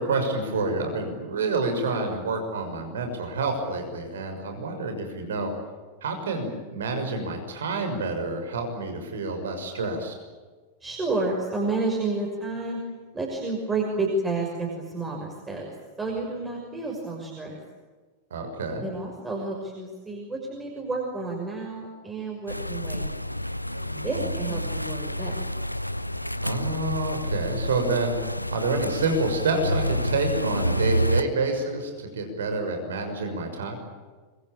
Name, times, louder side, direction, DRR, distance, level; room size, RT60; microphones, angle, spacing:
voice 1, 0.0-5.5 6.0-10.1 18.3-18.8 24.1-24.6 26.4-28.1 28.5-33.8, right 3 dB, 65° right, 5 dB, 6.4 m, -28 dB
voice 2, 10.8-12.8 13.1-15.7 16.0-17.6 18.8-23.1 23.7-25.4, right 3 dB, 15° right, -1 dB, 6.2 m, -30 dB
sound 1, 22.5-31.2, equal, 90° left, 0.8 m, -29 dB
26.0 x 24.0 x 8.9 m, 1.4 s
figure-of-eight pair, 90°, 0 cm